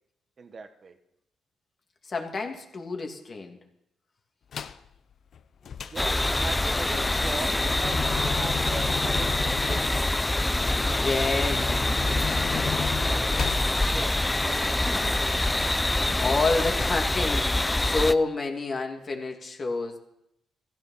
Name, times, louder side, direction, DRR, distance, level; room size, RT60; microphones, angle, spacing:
voice 1, 0.4-1.0 5.9-9.8 13.9-15.2, right 4 dB, 45° right, 7 dB, 1.5 m, -39 dB
voice 2, 2.0-3.6 10.8-11.9 16.2-20.0, left 3 dB, 40° left, 2 dB, 2.8 m, -28 dB
sound 1, 4.5-4.9 5.3-13.7, left 7 dB, 60° left, 0.8 m, -35 dB
sound 2, 6.0-18.1, left 1 dB, 15° left, 0.6 m, -25 dB
15.5 x 15.0 x 5.8 m, 0.79 s
cardioid pair, 90°, 0 cm